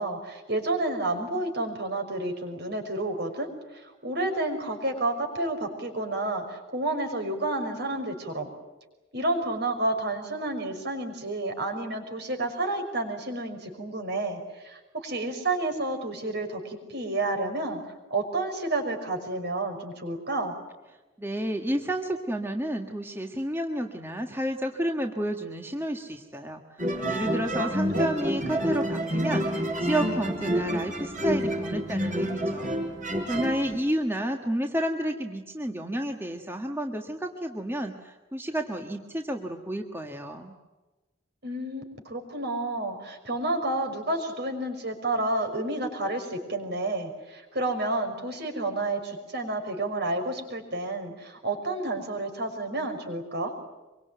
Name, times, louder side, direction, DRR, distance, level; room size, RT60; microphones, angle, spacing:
voice 1, 0.0-8.5 9.1-17.8 18.1-20.5 27.6-28.1 41.4-53.5, right 2 dB, 55° right, 4 dB, 5.7 m, -30 dB
voice 2, 21.2-32.7 33.2-40.5, equal, 10° right, 3 dB, 1.5 m, -31 dB
sound 1, 26.8-33.8, equal, 40° right, 5.6 m, -28 dB
25.5 x 23.5 x 9.3 m, 1.2 s
head